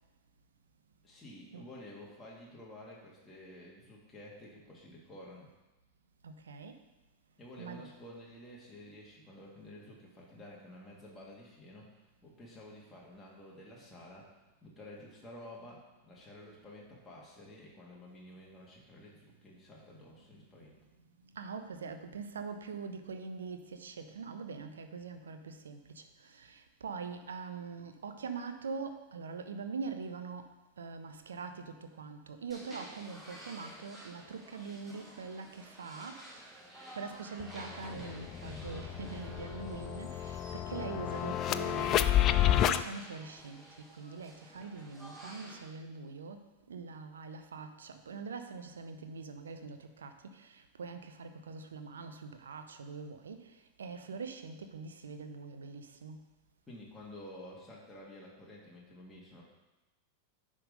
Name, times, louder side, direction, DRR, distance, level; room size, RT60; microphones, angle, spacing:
voice 1, 1.0-5.5 7.4-14.3 14.6-20.8 56.7-59.4, left 1 dB, 10° left, -5 dB, 1.8 m, -51 dB
voice 2, 6.2-6.8 7.6-7.8 21.2-30.5 30.8-36.6 36.9-42.1 42.6-46.4 46.7-56.2, right 5 dB, 70° right, 8 dB, 0.7 m, -43 dB
sound 1, 32.5-45.6, right 1 dB, 10° right, 2.0 m, -52 dB
sound 2, 37.4-37.5 37.8-42.8, left 11 dB, 35° left, 0.3 m, -30 dB
9.9 x 3.8 x 5.2 m, 1.1 s
figure-of-eight pair, 90°, 0 cm